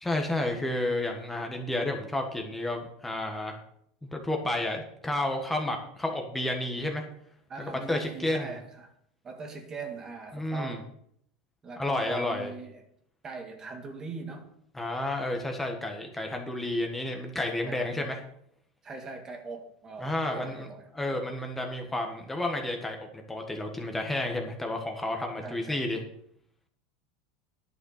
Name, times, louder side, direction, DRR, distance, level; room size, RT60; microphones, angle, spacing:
voice 1, 0.0-3.6 4.1-7.0 7.9-8.5 10.3-10.8 11.8-12.5 14.7-18.2 20.0-20.6 20.9-26.0, left 1 dB, 10° left, 1.6 m, -31 dB
voice 2, 7.5-8.9 9.2-10.9 11.6-12.8 13.2-14.5 17.7-18.2 18.8-20.9 25.4-25.8, right 4 dB, 25° right, 1.9 m, -41 dB
11.0 x 6.7 x 6.6 m
supercardioid pair, 130°, 2 cm